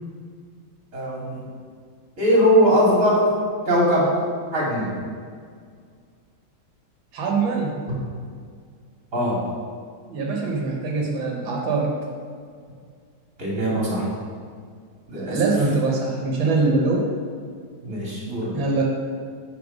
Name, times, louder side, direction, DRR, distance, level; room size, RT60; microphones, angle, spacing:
voice 1, 0.9-1.5 2.2-3.3 3.6-4.1 4.5-5.0 7.9-8.0 9.1-9.4 13.4-14.1 15.1-15.4 17.8-18.5, equal, 45° right, -5 dB, 2.9 m, -20 dB
voice 2, 7.1-7.8 10.1-12.0 15.1-17.1 18.5-18.8, right 3 dB, 90° right, -1 dB, 1.9 m, -23 dB
8.3 x 5.8 x 5.2 m, 2.1 s
omnidirectional pair, 2.1 m